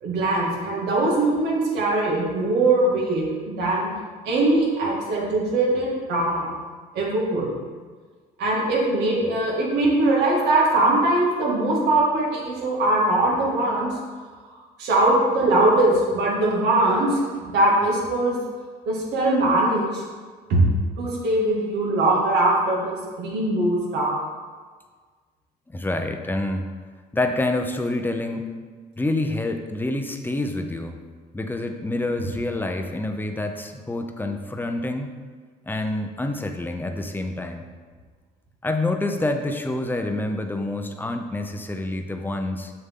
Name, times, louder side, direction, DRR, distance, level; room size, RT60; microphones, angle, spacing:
voice 1, 0.0-3.9 4.3-6.5 6.9-7.5 8.4-13.9 14.8-18.4 18.9-20.0 20.5-20.6 21.0-24.1, right 2 dB, 80° right, -4 dB, 2.3 m, -21 dB
voice 2, 25.7-26.7 27.1-28.5 29.0-31.0 31.3-35.1 35.7-37.7 38.6-42.7, left 2 dB, 10° left, 5 dB, 0.7 m, -27 dB
6.9 x 6.7 x 3.7 m, 1.5 s
cardioid pair, 110°, 17 cm